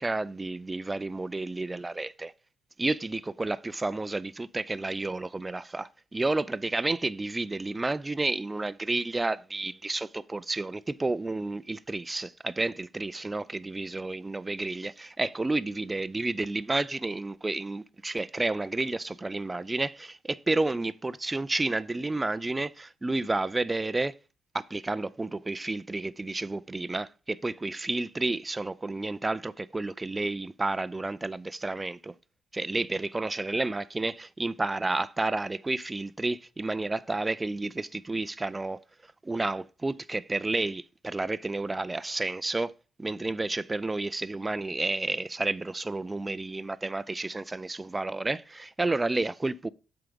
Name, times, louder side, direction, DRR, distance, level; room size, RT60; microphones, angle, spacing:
voice 1, 0.0-2.3 2.8-24.2 24.5-32.1 32.5-38.8 39.2-42.7 43.0-49.7, right 2 dB, 20° right, 0.5 m, -31 dB
7.6 x 4.7 x 5.2 m
cardioid pair, 90°, 0 cm